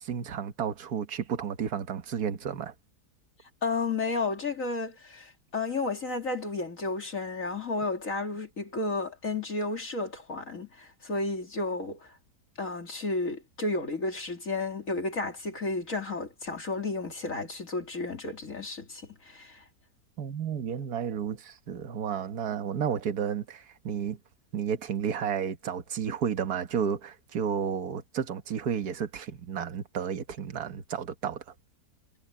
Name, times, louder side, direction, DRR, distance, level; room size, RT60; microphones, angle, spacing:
voice 1, 0.0-2.7 20.2-24.2 24.5-31.4, right 8 dB, 65° right, 1.8 m, -32 dB
voice 2, 3.6-12.1 12.6-19.6, left 3 dB, 50° left, 2.9 m, -32 dB
omnidirectional pair, 1.8 m